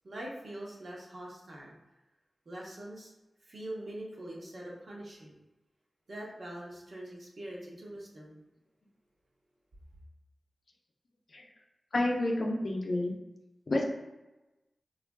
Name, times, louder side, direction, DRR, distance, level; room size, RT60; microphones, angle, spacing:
voice 1, 0.0-1.8 2.5-3.1 3.4-5.4 6.1-8.4, right 1 dB, 65° right, -3 dB, 0.7 m, -43 dB
voice 2, 11.9-13.2 13.7-13.9, left 1 dB, 70° left, 0 dB, 0.5 m, -29 dB
3.2 x 2.4 x 2.2 m, 1.0 s
cardioid pair, 45°, 0 cm